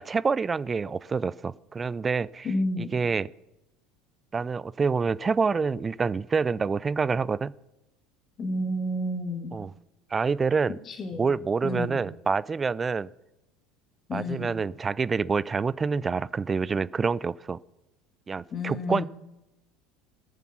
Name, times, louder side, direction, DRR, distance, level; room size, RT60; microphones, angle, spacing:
voice 1, 0.0-3.3 4.3-7.5 9.5-9.7 10.1-10.8 11.2-13.1 14.1-17.6 18.3-19.0, right 5 dB, 25° right, 21 dB, 0.4 m, -27 dB
voice 2, 2.4-2.9 8.4-9.5 10.9-11.3 11.6-12.0 14.1-14.5 18.5-19.1, left 1 dB, 35° left, 5 dB, 2.0 m, -30 dB
20.0 x 7.1 x 5.8 m, 0.95 s
figure-of-eight pair, 70°, 0 cm